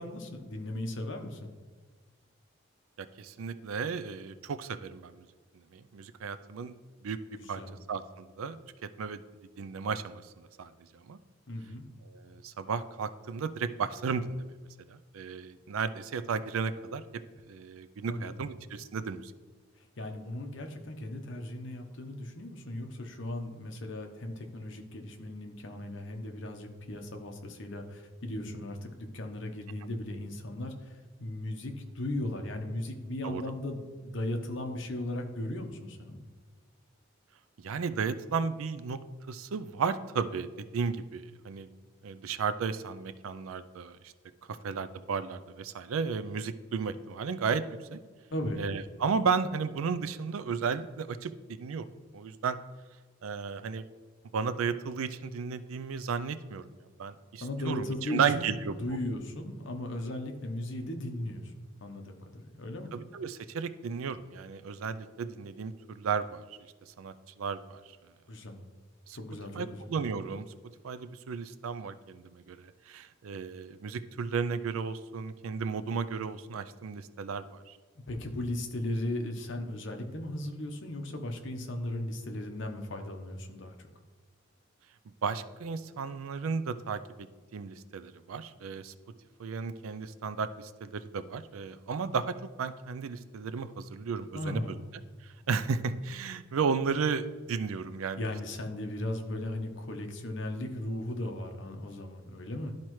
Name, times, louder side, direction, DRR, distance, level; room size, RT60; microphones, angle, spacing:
voice 1, 0.0-1.5 7.4-7.7 11.5-11.8 18.1-18.4 20.0-30.7 31.2-36.2 48.3-48.6 57.4-58.5 58.8-61.5 61.8-62.9 68.3-68.6 69.1-69.9 78.1-83.9 94.3-94.8 98.2-102.7, left 1 dB, 65° left, 4 dB, 0.9 m, -37 dB
voice 2, 3.0-5.2 5.7-6.7 7.0-7.2 7.5-7.6 7.9-8.6 8.8-9.2 9.6-10.2 10.6-10.7 11.1-11.2 12.1-14.5 14.9-17.0 17.5-19.3 33.2-33.4 37.6-39.0 39.3-41.7 42.0-44.1 44.6-47.6 47.9-48.0 48.6-51.9 52.1-52.6 53.2-53.8 54.3-56.7 57.0-58.8 62.9-66.4 67.0-67.8 69.1-69.2 69.5-70.4 70.8-72.6 72.9-77.8 85.2-87.3 87.5-88.9 89.4-94.6 95.5-98.3, right 5 dB, 90° right, 12 dB, 0.4 m, -34 dB
12.0 x 4.4 x 3.1 m, 1.5 s
head